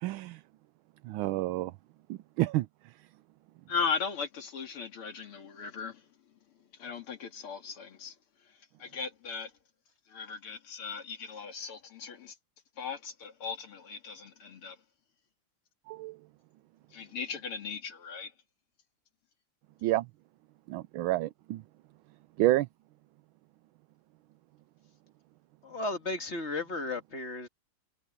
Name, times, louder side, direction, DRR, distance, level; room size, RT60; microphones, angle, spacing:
voice 1, 0.0-0.4 1.0-1.7 2.1-2.7 15.9-16.2 19.8-20.1 20.7-21.6 22.4-22.7, right 16 dB, 75° right, 1.3 m, -29 dB
voice 2, 3.7-6.0 6.8-8.1 8.8-9.5 10.1-12.3 12.8-14.8 16.9-18.3, left 6 dB, 85° left, 3.1 m, -37 dB
voice 3, 25.6-27.5, left 2 dB, 30° left, 2.1 m, -34 dB
omnidirectional pair, 2.4 m